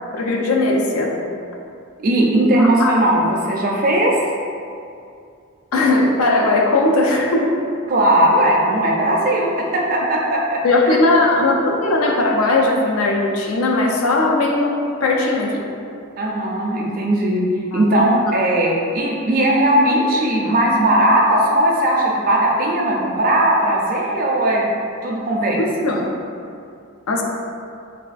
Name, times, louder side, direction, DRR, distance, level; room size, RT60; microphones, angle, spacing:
voice 1, 0.1-1.2 2.5-2.9 5.7-7.5 10.6-14.7 15.0-15.6 17.7-17.8 25.6-26.1 27.1-27.2, left 2 dB, 90° left, 0 dB, 0.4 m, -18 dB
voice 2, 2.0-4.2 7.9-11.0 16.2-17.4 17.7-24.7 25.0-25.6, right 1 dB, 40° right, -2 dB, 0.4 m, -18 dB
3.4 x 2.2 x 2.4 m, 2.5 s
head